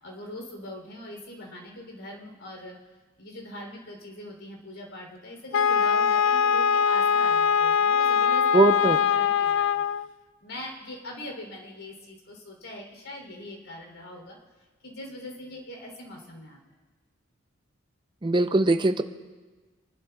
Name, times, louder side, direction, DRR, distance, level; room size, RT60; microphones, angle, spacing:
voice 1, 0.0-2.7 3.2-9.8 10.4-14.4 14.8-16.6, left 1 dB, 80° left, 1 dB, 3.2 m, -41 dB
Wind instrument woodwind instrument, 5.5-10.1, left 7 dB, 65° left, 0.3 m, -22 dB
voice 2, 8.5-9.0 18.2-19.0, right 2 dB, 25° right, 9 dB, 0.5 m, -21 dB
28.0 x 12.0 x 2.3 m, 1.3 s
head